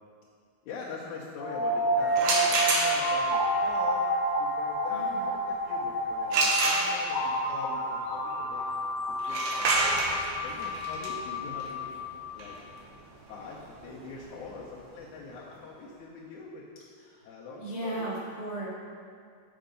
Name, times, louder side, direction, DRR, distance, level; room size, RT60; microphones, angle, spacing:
voice 1, 0.6-4.1 4.4-8.6 9.1-9.9 10.4-12.0 12.3-12.6 13.3-16.7 17.2-18.1, left 3 dB, 90° left, -6 dB, 2.3 m, -43 dB
sound 1, 1.4-12.3, equal, 65° left, 2.3 m, -30 dB
sound 2, 2.1-3.3 6.3-7.3 9.2-14.9, right 2 dB, 70° right, 1.8 m, -29 dB
voice 2, 4.9-5.3 17.6-18.7, right 1 dB, 10° left, -9 dB, 1.2 m, -35 dB
6.4 x 5.7 x 5.1 m, 2.2 s
omnidirectional pair, 3.3 m